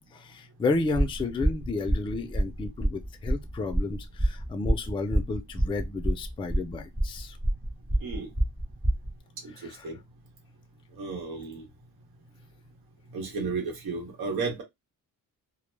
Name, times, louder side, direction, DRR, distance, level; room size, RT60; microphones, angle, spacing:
voice 1, 0.1-7.4, left 3 dB, 15° left, 0.3 m, -32 dB
sound 1, 0.7-9.1, right 1 dB, 15° right, 0.8 m, -27 dB
voice 2, 9.4-10.0 10.9-11.6 13.1-14.6, right 4 dB, 85° right, 1.1 m, -33 dB
2.2 x 2.1 x 3.2 m
cardioid pair, 130°, 36 cm